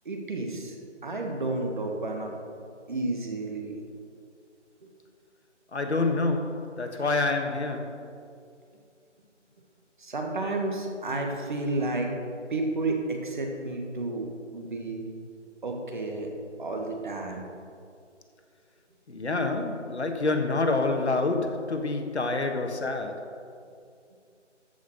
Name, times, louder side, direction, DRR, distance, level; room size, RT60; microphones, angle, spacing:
voice 1, 0.1-0.8 1.0-2.3 2.9-3.8 10.0-12.1 12.5-15.1 15.6-16.3 16.6-17.4, right 2 dB, 40° right, 1.7 m, -31 dB
voice 2, 5.7-8.1 19.1-23.4, left 3 dB, 65° left, 1.5 m, -27 dB
14.0 x 5.7 x 6.6 m
figure-of-eight pair, 165°, 36 cm